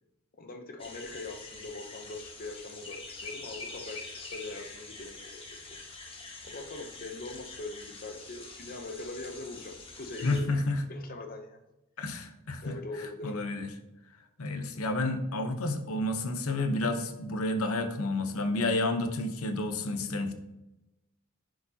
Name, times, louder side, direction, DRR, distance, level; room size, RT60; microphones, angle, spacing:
voice 1, 0.4-5.4 6.4-10.6 10.9-11.6 12.6-13.3 14.7-14.8, left 2 dB, 40° left, 4 dB, 0.7 m, -42 dB
sound 1, 0.8-10.4, left 3 dB, 25° left, 1.1 m, -45 dB
voice 2, 10.2-10.8 12.0-12.7 13.2-13.7 14.4-20.3, left 2 dB, 80° left, 8 dB, 0.8 m, -30 dB
10.0 x 4.8 x 2.8 m, 0.94 s
head